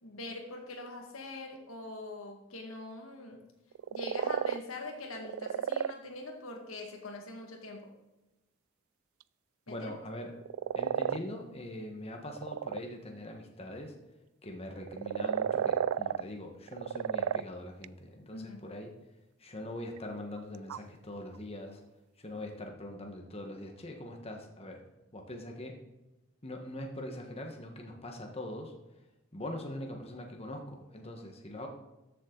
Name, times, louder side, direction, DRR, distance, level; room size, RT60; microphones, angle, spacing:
voice 1, 0.0-3.4 3.9-7.9 9.7-9.9 18.3-18.7, left 2 dB, 90° left, 3 dB, 2.0 m, -43 dB
sound 1, 3.7-4.6 5.2-5.9 10.4-11.2 12.2-12.8 14.8-16.2 16.7-17.4 17.8-17.9 20.0-20.1 20.4-20.8, right 8 dB, 85° right, 0.3 m, -31 dB
voice 2, 9.7-10.3 10.7-13.9 14.4-18.9 19.4-21.8 22.2-24.8 25.1-25.7 26.4-28.7 29.3-31.7, left 1 dB, 30° left, 2 dB, 1.4 m, -42 dB
13.5 x 7.5 x 4.0 m, 1.0 s
head